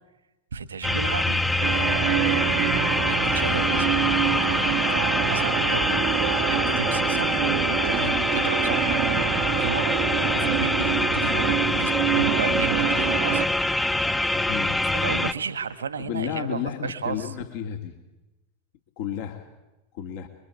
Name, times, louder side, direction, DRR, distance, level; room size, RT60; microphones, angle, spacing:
voice 1, 0.5-3.9 4.4-13.5 13.9-14.0 14.9-17.3, right 5 dB, 80° right, 11 dB, 1.9 m, -34 dB
sound 1, 0.8-15.3, left 2 dB, 10° left, 1.0 m, -25 dB
sound 2, 1.6-13.5, right 18 dB, 55° right, 1.0 m, -27 dB
voice 2, 14.5-14.8 16.0-18.0 19.0-19.5 19.9-20.3, left 9 dB, 55° left, 4 dB, 2.5 m, -32 dB
27.0 x 23.0 x 8.4 m, 1.0 s
figure-of-eight pair, 85°, 0 cm